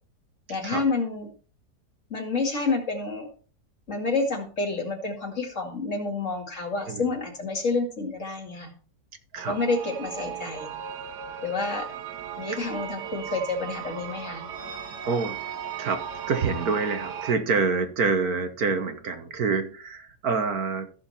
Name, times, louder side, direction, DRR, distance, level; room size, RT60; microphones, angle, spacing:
voice 1, 0.5-1.3 2.1-3.3 3.9-8.7 9.4-10.7 11.4-11.9 12.4-14.5, left 3 dB, 45° left, 2.6 m, -29 dB
sound 1, 9.4-17.4, right 8 dB, 80° right, 1.8 m, -37 dB
voice 2, 15.0-15.4 15.8-20.9, right 4 dB, 65° right, 1.7 m, -27 dB
14.5 x 6.7 x 4.3 m
omnidirectional pair, 1.8 m